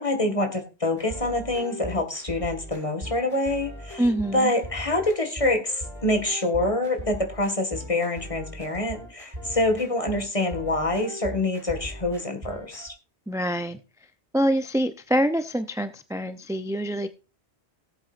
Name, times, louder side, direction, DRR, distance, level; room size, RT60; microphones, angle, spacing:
voice 1, 0.0-4.0 4.3-12.9, left 2 dB, 30° left, 6 dB, 2.0 m, -26 dB
sound 1, 1.0-12.9, equal, 35° right, 5.7 m, -40 dB
voice 2, 4.0-4.5 13.3-13.8 14.3-17.2, equal, 5° right, 10 dB, 0.4 m, -25 dB
18.5 x 8.0 x 2.5 m, 0.30 s
omnidirectional pair, 1.1 m